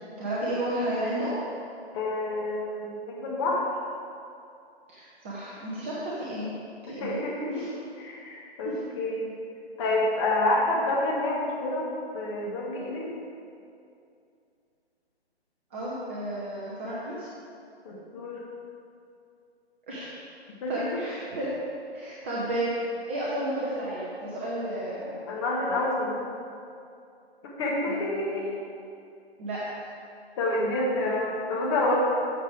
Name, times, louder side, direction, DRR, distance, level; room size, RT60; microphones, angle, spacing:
voice 1, 0.2-1.3 4.9-6.5 6.8-7.1 7.5-7.7 8.6-8.8 15.7-17.3 19.9-20.1 20.7-21.5 21.9-22.8 23.1-25.2 27.9-28.5 29.4-29.9, right 1 dB, 10° right, -7 dB, 0.6 m, -32 dB
voice 2, 1.9-3.6 6.8-7.6 8.0-9.3 9.8-11.9 12.1-13.1 17.8-18.4 20.6-20.9 25.3-26.2 27.4-28.5 30.4-31.9, left 2 dB, 25° left, -3 dB, 1.7 m, -28 dB
12.5 x 7.3 x 3.5 m, 2.5 s
figure-of-eight pair, 145°, 33 cm